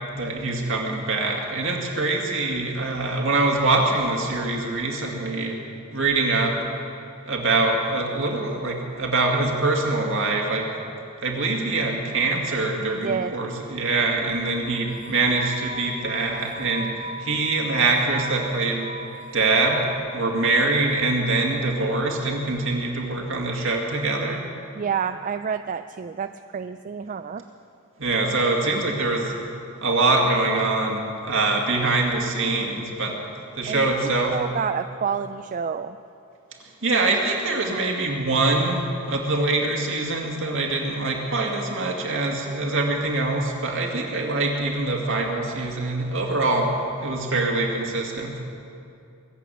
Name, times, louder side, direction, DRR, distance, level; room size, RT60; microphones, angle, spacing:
voice 1, 0.1-5.6 5.9-6.6 7.3-10.7 11.2-16.9 17.2-18.9 19.3-19.8 20.1-24.4 28.0-29.3 29.8-33.2 33.6-34.4 36.8-46.7 47.0-48.4, right 2 dB, 65° right, 0 dB, 2.3 m, -24 dB
voice 2, 12.9-13.4 24.8-27.4 33.7-36.0, right 7 dB, 40° right, 9 dB, 0.3 m, -29 dB
sound 1, 14.6-20.0, right 1 dB, 35° left, 1.8 m, -39 dB
23.0 x 8.4 x 7.1 m, 2.6 s
head